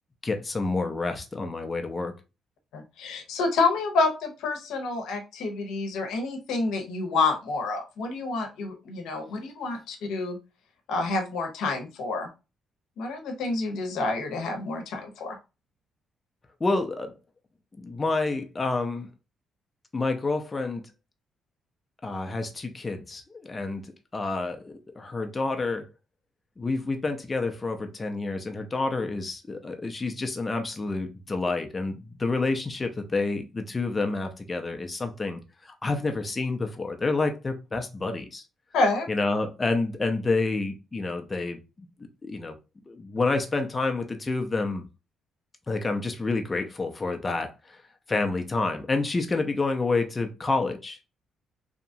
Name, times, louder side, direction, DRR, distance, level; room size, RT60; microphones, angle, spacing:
voice 1, 0.2-2.1 16.6-17.1 17.8-19.1 19.9-20.9 22.0-25.9 26.6-38.4 39.1-41.6 42.2-42.6 42.9-44.8 45.7-47.8 48.1-51.0, left 3 dB, 25° left, 0.5 m, -29 dB
voice 2, 2.7-10.4 10.9-12.3 13.0-15.4 38.7-39.1, left 3 dB, 85° left, 0.7 m, -28 dB
2.8 x 2.3 x 2.6 m
cardioid pair, 90°, 0 cm